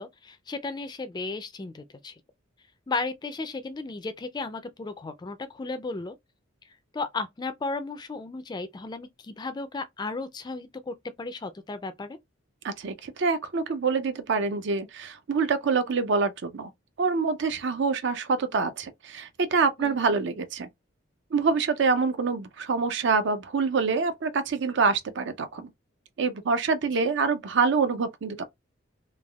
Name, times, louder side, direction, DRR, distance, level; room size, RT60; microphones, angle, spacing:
voice 1, 0.0-2.1 2.9-6.2 6.9-12.2 19.8-20.0, left 3 dB, 20° left, 0.3 m, -34 dB
voice 2, 12.6-16.7 17.0-20.7 21.3-25.7 26.2-28.4, right 4 dB, 60° right, 0.5 m, -26 dB
3.3 x 2.2 x 2.3 m
head